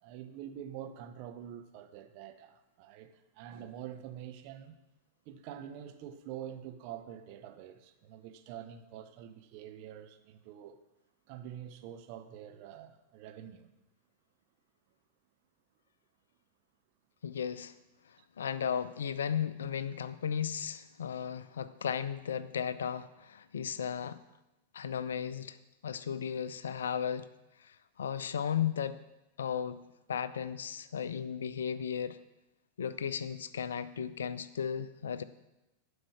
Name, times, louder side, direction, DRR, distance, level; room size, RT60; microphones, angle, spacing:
voice 1, 0.0-4.8 5.3-10.8 11.3-13.7, right 10 dB, 45° right, 0.9 m, -46 dB
voice 2, 17.2-17.7 18.4-24.2 24.7-25.6 25.8-27.3 27.6-29.0 29.4-29.8 30.1-32.2 32.8-35.2, left 8 dB, 65° left, 0.5 m, -35 dB
11.5 x 5.4 x 6.1 m
figure-of-eight pair, 95°, 0 cm